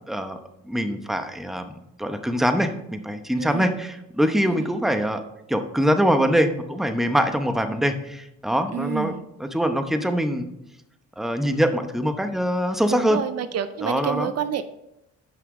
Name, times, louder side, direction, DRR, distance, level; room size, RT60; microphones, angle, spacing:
voice 1, 0.1-0.4 0.6-5.2 5.5-9.1 9.4-10.5 11.2-13.2 13.8-14.3, equal, ahead, 7 dB, 0.8 m, -23 dB
voice 2, 3.4-3.8 4.5-4.6 8.7-9.2 12.9-14.6, right 9 dB, 55° right, 12 dB, 0.5 m, -28 dB
9.1 x 5.9 x 3.7 m, 0.83 s
cardioid pair, 90°, 30 cm